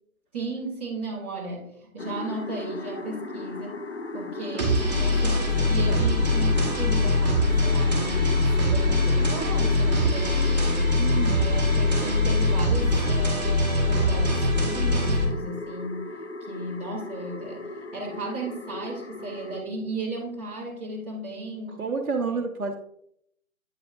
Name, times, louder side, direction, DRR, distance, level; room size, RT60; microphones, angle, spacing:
voice 1, 0.3-3.8 4.1-10.6 11.3-16.1 16.4-21.8 22.3-22.4, right 2 dB, 10° right, -11 dB, 1.2 m, -35 dB
sound 1, 2.0-19.6, left 3 dB, 50° left, 0.5 m, -36 dB
sound 2, 4.6-15.2, left 2 dB, 30° right, 1.6 m, -22 dB
voice 2, 10.5-11.5 21.8-22.7, right 4 dB, 75° right, 0 dB, 0.9 m, -30 dB
8.9 x 5.0 x 2.5 m, 0.73 s
figure-of-eight pair, 160°, 43 cm